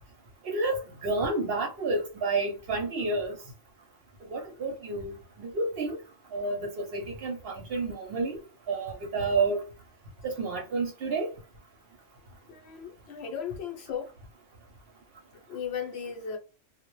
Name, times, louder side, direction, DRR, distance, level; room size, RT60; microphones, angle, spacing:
voice 1, 0.4-3.4 4.3-6.0 6.3-8.4 8.7-9.6 10.2-11.3, right 3 dB, 60° right, 0.7 m, -30 dB
voice 2, 12.5-14.1 15.5-16.4, left 7 dB, 65° left, 0.8 m, -36 dB
2.1 x 2.0 x 3.0 m
omnidirectional pair, 1.3 m